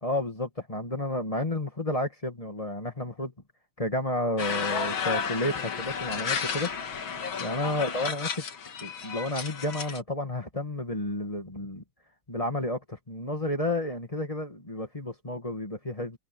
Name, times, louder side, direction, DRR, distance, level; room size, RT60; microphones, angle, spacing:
voice 1, 0.0-3.3 3.8-6.7 7.4-8.4 8.8-11.8 12.3-16.2, left 1 dB, 15° left, 2.0 m, -31 dB
sound 1, 4.4-10.0, left 6 dB, 65° left, 2.6 m, -32 dB
omnidirectional pair, 2.4 m